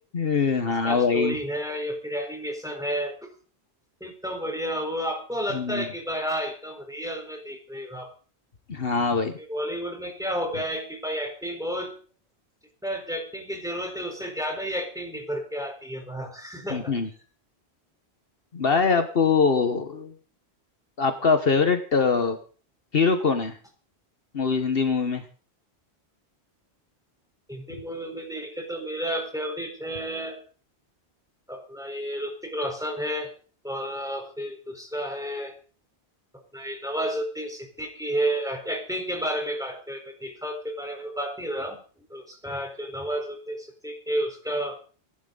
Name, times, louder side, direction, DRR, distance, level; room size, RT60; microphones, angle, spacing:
voice 1, 0.1-1.4 5.5-5.8 8.7-9.3 16.7-17.1 18.5-20.1 21.0-22.4 22.9-23.6 24.3-25.2, left 5 dB, 60° left, 7 dB, 1.5 m, -23 dB
voice 2, 0.8-3.3 4.0-8.1 9.4-11.9 12.8-16.9 27.5-30.4 31.5-33.3 33.6-35.5 36.5-41.8 42.1-44.8, equal, 5° right, 3 dB, 4.1 m, -31 dB
24.5 x 11.5 x 3.9 m, 0.40 s
omnidirectional pair, 1.1 m